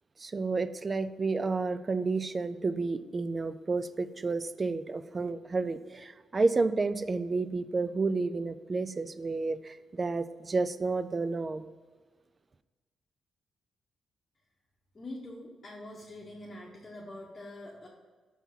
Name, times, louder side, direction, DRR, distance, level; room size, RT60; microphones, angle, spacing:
voice 1, 0.2-11.7, right 3 dB, 35° right, 13 dB, 0.4 m, -31 dB
voice 2, 14.9-17.9, left 1 dB, 35° left, -3 dB, 0.9 m, -44 dB
5.6 x 3.5 x 5.8 m, 1.4 s
cardioid pair, 80°, 0 cm